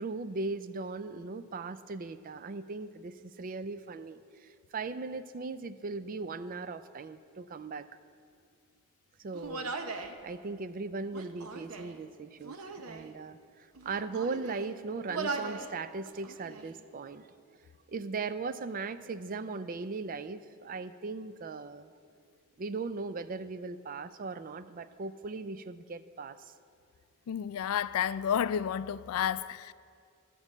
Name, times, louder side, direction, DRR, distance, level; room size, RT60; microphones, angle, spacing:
voice 1, 0.0-7.9 9.2-12.6 12.9-17.3 17.9-21.9 22.6-26.5, right 4 dB, 40° right, 0.4 m, -38 dB
Human voice, 9.3-10.2 11.1-12.0 12.4-13.1 13.8-14.7 15.1-15.7 16.0-16.7, right 4 dB, 85° right, 0.8 m, -39 dB
voice 2, 27.3-29.7, left 9 dB, 80° left, 0.3 m, -31 dB
13.5 x 5.3 x 7.2 m
head